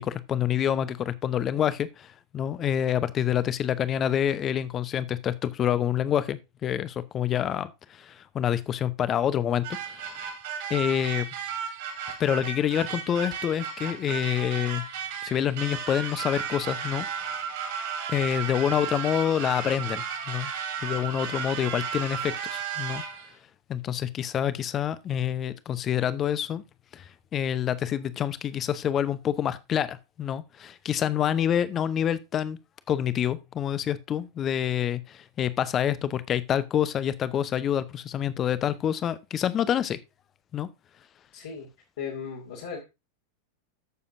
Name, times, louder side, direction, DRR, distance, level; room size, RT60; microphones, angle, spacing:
voice 1, 0.0-10.3 10.7-11.3 12.2-14.8 15.2-17.1 18.1-20.5 20.8-23.0 23.7-26.6 26.9-32.6 32.9-40.0 40.5-40.7, left 10 dB, 30° left, 0.7 m, -27 dB
sound 1, 9.6-23.3, right 7 dB, 50° right, 3.0 m, -34 dB
voice 2, 41.3-41.7 42.0-42.8, left 6 dB, 60° left, 2.4 m, -36 dB
13.5 x 6.9 x 2.6 m
figure-of-eight pair, 90°, 0 cm